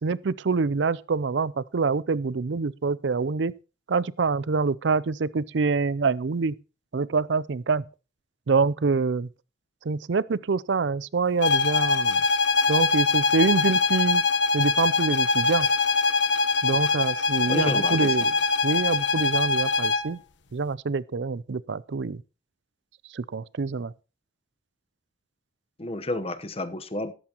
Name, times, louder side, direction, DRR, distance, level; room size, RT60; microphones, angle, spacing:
voice 1, 0.0-3.5 3.9-6.5 6.9-7.8 8.5-9.3 9.9-12.2 12.7-14.2 14.5-15.7 16.6-18.3 18.6-20.2 20.5-22.2 23.1-23.9, right 4 dB, 65° right, 0.5 m, -26 dB
sound 1, 11.4-20.1, left 4 dB, 65° left, 1.0 m, -23 dB
voice 2, 17.5-18.2 25.8-27.1, left 2 dB, 30° left, 1.0 m, -31 dB
13.5 x 12.5 x 2.9 m
head